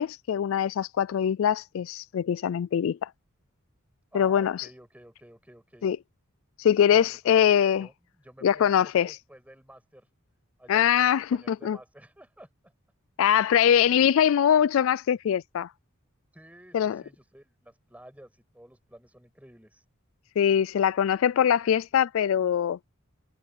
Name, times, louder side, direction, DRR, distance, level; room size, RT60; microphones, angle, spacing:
voice 1, 0.0-3.1 4.1-4.6 5.8-6.0 6.6-7.9 8.4-9.2 10.7-11.8 13.2-15.7 16.7-17.0 20.4-22.8, left 9 dB, 65° left, 0.3 m, -23 dB
voice 2, 4.1-5.9 6.9-10.1 10.6-12.7 13.5-14.3 16.3-19.8, right 1 dB, 5° right, 7.7 m, -52 dB
head